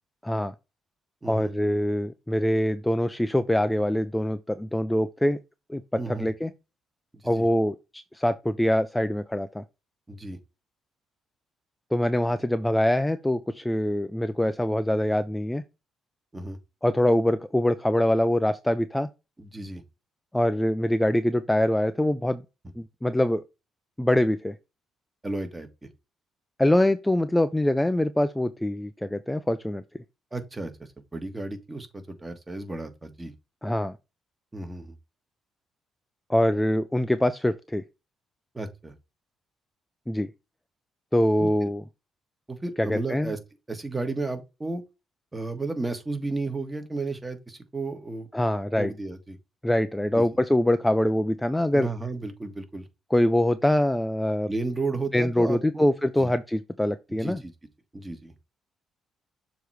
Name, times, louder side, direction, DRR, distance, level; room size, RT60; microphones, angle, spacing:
voice 1, 0.2-0.5 1.3-5.4 5.7-6.5 7.2-9.6 11.9-15.6 16.8-19.1 20.3-22.4 22.8-23.4 24.0-24.6 26.6-29.8 33.6-33.9 36.3-37.8 40.1-40.3 41.1-41.8 42.8-43.3 48.3-48.9 49.6-51.9 53.1-54.5 55.1-57.4, left 1 dB, 10° left, 0.5 m, -24 dB
voice 2, 5.9-6.3 7.1-7.4 10.1-10.4 16.3-16.6 19.4-19.8 25.2-25.9 30.3-33.3 34.5-34.9 38.5-38.9 41.4-41.7 42.5-43.4 43.7-44.8 45.3-48.3 48.8-49.4 50.1-50.2 51.7-52.8 54.5-55.8 56.2-56.3 57.1-57.5 57.9-58.3, right 3 dB, 20° right, 1.5 m, -33 dB
6.9 x 3.0 x 4.8 m
cardioid pair, 90°, 0 cm